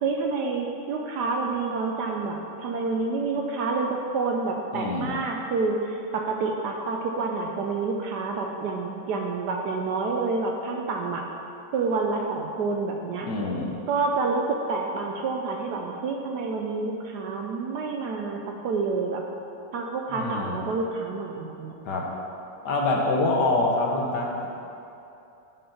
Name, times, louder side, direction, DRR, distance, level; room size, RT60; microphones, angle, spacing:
voice 1, 0.0-11.3 11.7-13.3 13.9-19.2 19.7-22.0, right 4 dB, 70° right, 1 dB, 1.0 m, -28 dB
voice 2, 4.7-5.1 13.3-13.7 20.1-20.6 21.8-22.1 22.6-24.5, left 2 dB, 65° left, -1 dB, 1.5 m, -25 dB
7.5 x 5.5 x 5.7 m, 2.8 s
omnidirectional pair, 2.1 m